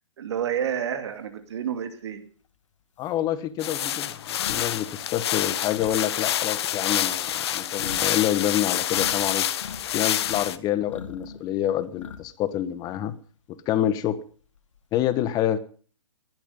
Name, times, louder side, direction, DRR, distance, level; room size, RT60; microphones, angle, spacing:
voice 1, 0.2-2.2, right 9 dB, 60° right, 8 dB, 2.4 m, -29 dB
sound 1, 2.5-2.6 3.0-9.2 9.5-10.5 10.8-12.5 12.8-13.0 14.4-15.0, left 6 dB, 70° left, 2.0 m, -42 dB
voice 2, 3.0-9.5 9.9-13.2 13.5-14.2 14.9-15.6, left 11 dB, 25° left, 13 dB, 1.4 m, -27 dB
sound 2, 3.6-10.6, left 11 dB, 55° left, 1.1 m, -27 dB
18.5 x 12.5 x 5.5 m, 0.43 s
hypercardioid pair, 135°, 16 cm